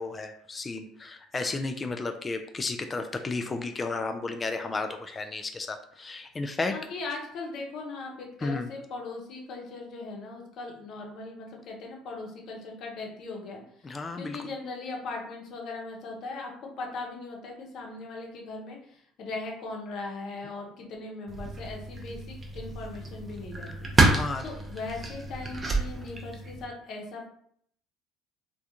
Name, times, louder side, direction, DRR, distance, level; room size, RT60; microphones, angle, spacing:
voice 1, 0.0-6.8 8.4-8.7 13.8-14.4 24.1-24.4, left 3 dB, 30° left, 6 dB, 0.3 m, -33 dB
voice 2, 6.7-13.9 14.2-23.9 24.4-27.3, left 3 dB, 55° left, 0 dB, 0.7 m, -39 dB
sound 1, 21.3-26.6, right 2 dB, 25° right, 0.6 m, -29 dB
2.3 x 2.2 x 2.8 m, 0.65 s
hypercardioid pair, 65°, 0 cm